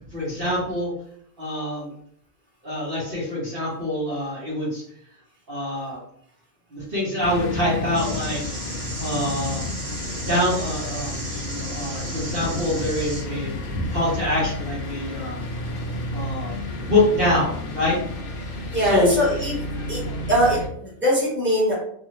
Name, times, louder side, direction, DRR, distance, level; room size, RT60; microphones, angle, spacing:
voice 1, 0.1-0.9 1.4-1.9 2.6-4.8 5.5-6.0 6.7-8.4 9.0-9.7 10.2-15.4 16.1-18.0 18.8-19.1, left 1 dB, 55° right, -7 dB, 1.1 m, -25 dB
sound 1, 7.2-20.7, left 1 dB, 60° left, 0.7 m, -31 dB
sound 2, 7.9-13.2, right 2 dB, 85° right, 1.5 m, -35 dB
voice 2, 18.7-20.0 20.3-21.7, equal, 10° right, -6 dB, 1.2 m, -22 dB
2.6 x 2.6 x 3.0 m, 0.67 s
omnidirectional pair, 1.2 m